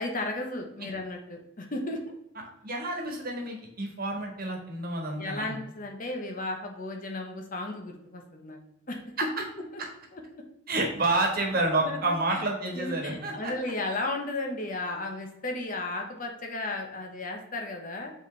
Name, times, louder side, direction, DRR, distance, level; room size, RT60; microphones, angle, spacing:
voice 1, 0.0-2.0 5.2-8.6 8.9-9.0 10.1-10.2 11.8-12.0 12.3-12.4 12.7-18.1, left 2 dB, 40° left, 3 dB, 1.0 m, -34 dB
voice 2, 2.6-5.5 10.7-13.5, right 2 dB, 45° right, 1 dB, 1.5 m, -29 dB
7.9 x 4.3 x 3.3 m, 0.80 s
head